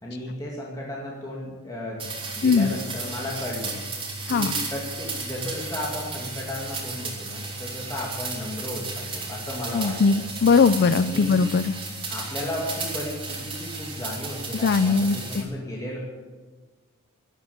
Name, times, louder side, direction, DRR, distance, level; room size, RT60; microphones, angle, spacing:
voice 1, 0.0-3.8 4.3-10.2 11.0-11.4 12.1-16.0, left 1 dB, 15° left, -4 dB, 2.3 m, -34 dB
sound 1, 2.0-15.4, right 3 dB, 25° right, 3.4 m, -34 dB
voice 2, 2.4-2.7 4.3-4.5 9.7-11.7 14.5-15.5, left 4 dB, 50° left, 12 dB, 0.4 m, -20 dB
13.0 x 11.5 x 8.6 m, 1.4 s
head